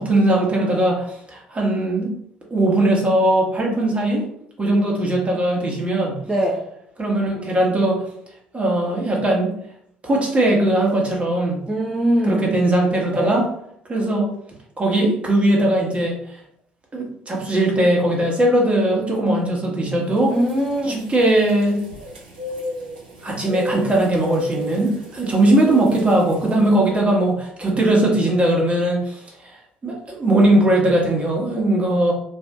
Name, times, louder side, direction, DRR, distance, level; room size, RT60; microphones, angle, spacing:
voice 1, 0.0-2.1 2.5-4.2 4.6-6.2 7.0-8.0 8.5-9.5 10.0-11.6 12.2-13.4 13.9-14.3 14.8-16.4 16.9-20.3 20.9-21.8 23.2-29.6 29.8-32.1, right 1 dB, 25° right, -2 dB, 1.2 m, -19 dB
voice 2, 6.3-6.6 11.7-12.5 13.1-13.4 20.3-21.0, right 1 dB, 10° right, -3 dB, 0.6 m, -22 dB
sound 1, 20.1-26.7, left 2 dB, 85° right, 0.6 m, -35 dB
2.7 x 2.5 x 3.4 m, 0.72 s
hypercardioid pair, 55°, 5 cm